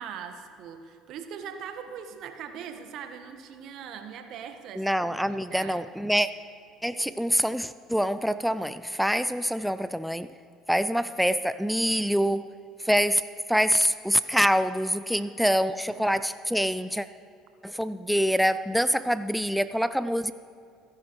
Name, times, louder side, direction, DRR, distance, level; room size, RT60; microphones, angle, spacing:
voice 1, 0.0-5.9 15.2-15.3 15.6-16.0, right 7 dB, 60° right, 7 dB, 1.4 m, -41 dB
voice 2, 4.8-6.3 6.8-10.3 10.7-12.5 12.8-17.1 17.6-20.3, equal, ahead, 13 dB, 0.4 m, -25 dB
28.0 x 10.5 x 3.2 m, 2.4 s
hypercardioid pair, 60°, 0 cm